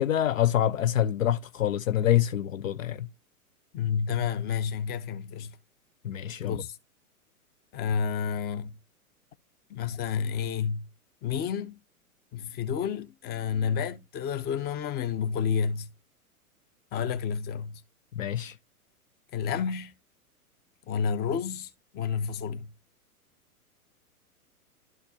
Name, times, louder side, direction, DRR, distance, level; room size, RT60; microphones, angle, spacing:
voice 1, 0.0-3.1 6.0-6.6 18.1-18.5, left 11 dB, 60° left, 0.6 m, -26 dB
voice 2, 3.7-5.5 6.4-6.8 7.7-8.7 9.7-10.9 11.2-11.8 12.3-15.9 16.9-17.8 19.3-19.9 20.9-22.7, left 7 dB, 20° left, 0.9 m, -30 dB
12.0 x 4.4 x 2.8 m
figure-of-eight pair, 110°, 45 cm